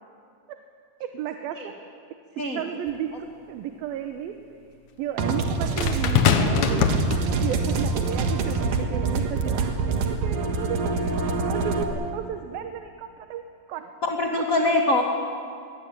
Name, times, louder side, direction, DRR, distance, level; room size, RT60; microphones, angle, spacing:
voice 1, 1.0-1.6 2.5-4.4 5.0-7.2 7.4-9.7 10.0-13.4 13.7-13.9 14.3-14.4, right 9 dB, 90° right, 7 dB, 2.9 m, -33 dB
sound 1, 2.9-3.0 5.8-7.7 8.6-8.8, left 7 dB, 65° left, 2.4 m, -23 dB
sound 2, 5.2-11.8, right 4 dB, 70° right, 3.2 m, -25 dB
voice 2, 14.0-15.0, left 2 dB, 35° left, 1 dB, 1.5 m, -23 dB
22.5 x 21.5 x 8.8 m, 2.2 s
omnidirectional pair, 4.1 m